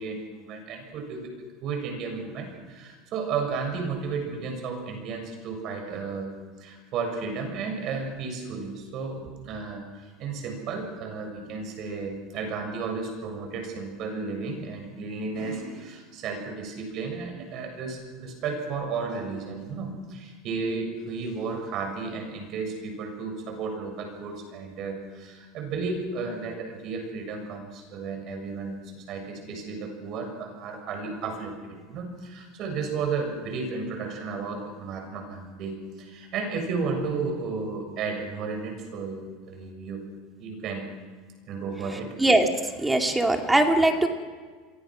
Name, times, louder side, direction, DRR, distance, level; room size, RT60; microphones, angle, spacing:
voice 1, 0.0-1.3 1.6-6.3 6.6-40.0 40.4-40.9 41.5-42.2 43.0-43.1, right 4 dB, 45° right, 4 dB, 7.0 m, -33 dB
voice 2, 42.8-44.1, right 2 dB, 5° right, 3 dB, 2.3 m, -20 dB
29.0 x 23.0 x 6.3 m, 1.5 s
supercardioid pair, 155°, 0 cm